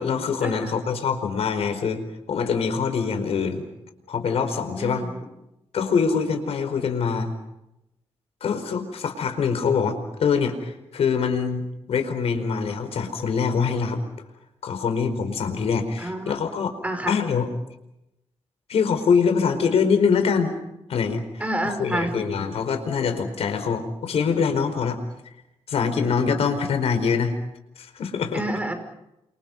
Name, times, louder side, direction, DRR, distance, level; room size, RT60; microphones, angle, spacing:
voice 1, 0.0-3.7 4.1-5.1 5.7-7.3 8.4-14.0 14.6-16.8 17.1-17.5 18.7-20.5 20.9-21.2 21.6-25.0 25.7-27.3 27.8-28.4, left 6 dB, 75° left, 8 dB, 4.7 m, -24 dB
voice 2, 4.8-5.2 16.0-16.3 16.8-17.1 21.4-22.2 28.3-28.7, right 1 dB, 15° right, 6 dB, 6.0 m, -28 dB
30.0 x 27.5 x 5.5 m, 0.87 s
cardioid pair, 105°, 11 cm